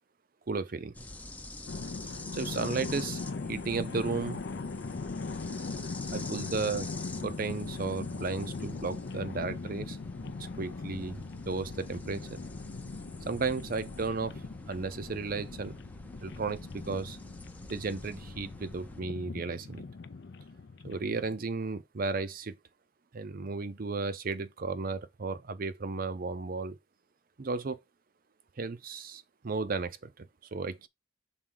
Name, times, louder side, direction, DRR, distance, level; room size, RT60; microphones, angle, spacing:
voice 1, 0.5-0.9 2.3-3.2 3.5-4.5 6.1-6.9 7.2-10.0 10.6-12.4 13.3-14.4 14.7-15.8 16.2-17.2 17.7-19.8 20.8-22.6 23.1-26.8 27.4-27.8 28.6-30.9, right 4 dB, 45° right, 0.5 m, -34 dB
sound 1, 0.9-19.0, left 2 dB, 10° left, 0.5 m, -47 dB
sound 2, 1.7-21.4, left 4 dB, 60° left, 0.5 m, -40 dB
6.1 x 4.1 x 3.8 m
head